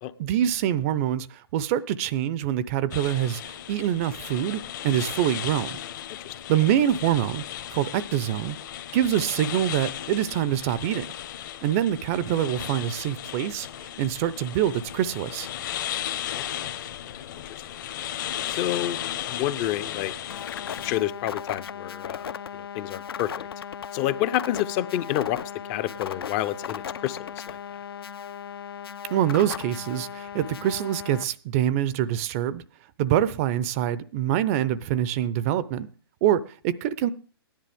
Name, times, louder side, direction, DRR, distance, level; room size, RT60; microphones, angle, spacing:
voice 1, 0.2-5.8 6.5-7.4 7.7-8.6 8.9-11.0 11.6-13.7 14.0-15.5 29.1-32.6 33.0-35.9 36.2-37.1, right 11 dB, 35° right, 17 dB, 0.6 m, -25 dB
sound 1, 2.9-21.0, left 11 dB, 50° left, 1.3 m, -35 dB
voice 2, 16.3-16.7 17.1-17.2 17.5-17.6 18.5-19.0 19.3-20.1 20.8-23.5 23.9-25.4 25.7-27.6, left 13 dB, 30° left, 13 dB, 0.7 m, -29 dB
sound 2, 20.3-31.2, left 8 dB, 65° left, 0.8 m, -37 dB
16.0 x 10.5 x 3.5 m, 0.38 s
hypercardioid pair, 130°, 13 cm